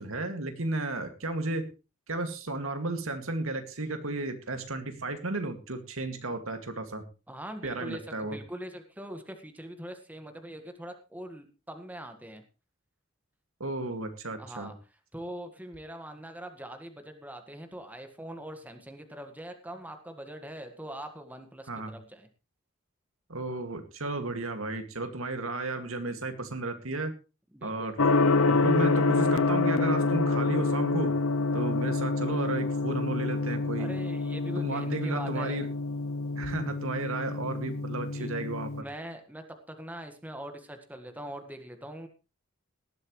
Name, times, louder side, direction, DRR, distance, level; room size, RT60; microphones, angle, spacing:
voice 1, 0.0-1.7 2.1-7.0 7.6-8.4 13.6-14.7 21.7-21.9 23.3-27.1 27.6-28.0 28.5-31.1 31.5-33.9 34.6-35.7 36.3-38.7, right 2 dB, 80° right, 6 dB, 2.2 m, -33 dB
voice 2, 7.3-12.4 14.4-14.8 15.1-22.3 27.5-27.9 33.8-35.6 38.1-38.3 38.8-42.1, right 1 dB, 10° right, 6 dB, 1.7 m, -42 dB
Gong, 28.0-38.8, left 3 dB, 90° left, 0.7 m, -27 dB
18.5 x 12.0 x 3.2 m, 0.31 s
head